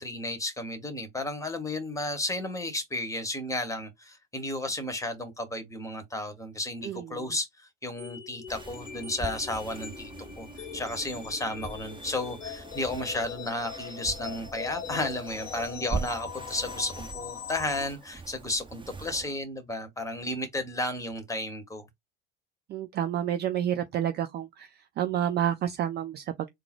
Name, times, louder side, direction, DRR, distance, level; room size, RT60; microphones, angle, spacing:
voice 1, 0.0-10.1 10.4-21.8, left 1 dB, 10° left, 1.2 m, -33 dB
voice 2, 6.8-7.3 22.7-24.7 25.0-26.5, right 10 dB, 30° right, 0.5 m, -29 dB
sound 1, 8.0-17.9, left 7 dB, 90° left, 0.8 m, -41 dB
sound 2, 8.5-19.3, right 5 dB, 15° right, 0.9 m, -42 dB
3.8 x 2.1 x 4.4 m
figure-of-eight pair, 80°, 36 cm